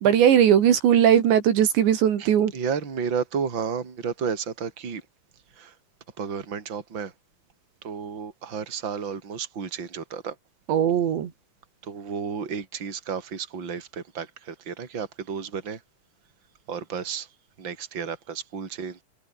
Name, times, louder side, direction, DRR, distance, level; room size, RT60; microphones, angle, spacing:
voice 1, 0.0-2.5 10.7-11.3, right 9 dB, 70° right, 4.6 m, -19 dB
voice 2, 2.2-5.0 5.6-5.7 6.2-7.1 7.8-10.4 11.8-15.8 16.7-17.3 17.6-19.0, right 6 dB, 25° right, 3.8 m, -32 dB
omnidirectional pair, 5.4 m